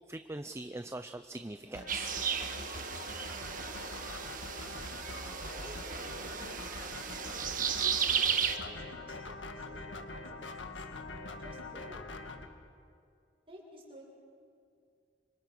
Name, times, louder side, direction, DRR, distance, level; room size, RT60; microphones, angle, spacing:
voice 1, 0.1-2.2, right 2 dB, 15° right, 9 dB, 0.6 m, -42 dB
sound 1, 1.7-12.5, left 2 dB, 80° left, 1.8 m, -44 dB
sound 2, 1.9-8.6, right 7 dB, 50° right, 1.5 m, -34 dB
voice 2, 5.1-6.8 7.2-10.9 11.3-12.3 13.5-14.1, right 1 dB, 30° right, -2 dB, 6.9 m, -53 dB
27.5 x 25.5 x 6.2 m, 2.3 s
head